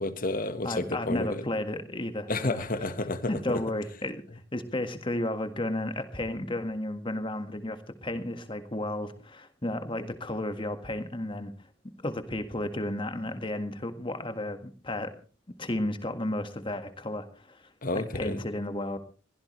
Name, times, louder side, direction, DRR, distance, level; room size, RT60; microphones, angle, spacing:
voice 1, 0.0-1.4 2.3-3.6 17.8-18.4, left 2 dB, 45° left, 11 dB, 1.5 m, -31 dB
voice 2, 0.6-2.6 3.3-4.2 4.5-11.5 12.0-15.1 15.6-19.0, left 1 dB, 25° left, 8 dB, 1.8 m, -33 dB
22.5 x 16.5 x 3.3 m, 0.37 s
head